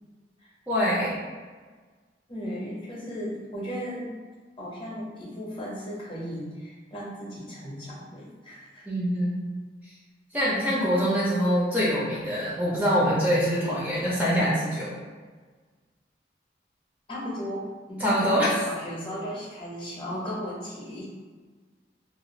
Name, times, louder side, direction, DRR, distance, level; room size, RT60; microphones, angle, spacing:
voice 1, 0.7-1.2 8.9-9.4 10.3-14.9 18.0-18.5, equal, 10° right, -7 dB, 0.4 m, -24 dB
voice 2, 2.3-4.1 4.6-8.9 10.4-10.7 17.1-21.0, equal, 30° left, -5 dB, 0.7 m, -36 dB
2.4 x 2.2 x 3.0 m, 1.4 s
head